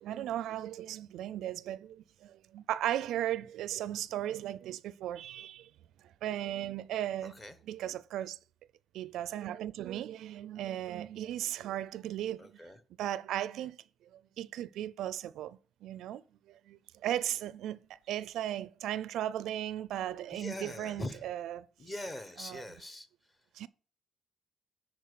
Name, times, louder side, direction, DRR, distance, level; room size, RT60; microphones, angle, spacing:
voice 1, 0.0-5.7 6.2-7.3 7.7-8.4 8.9-12.4 13.0-13.8 14.4-16.2 16.7-17.8 18.1-21.7 22.4-22.6 23.6-23.7, right 12 dB, 80° right, 0.4 m, -36 dB
voice 2, 7.2-7.6 12.4-12.8 20.3-21.3 21.8-23.1, left 1 dB, 20° left, 1.0 m, -42 dB
10.0 x 4.3 x 6.5 m
cardioid pair, 155°, 0 cm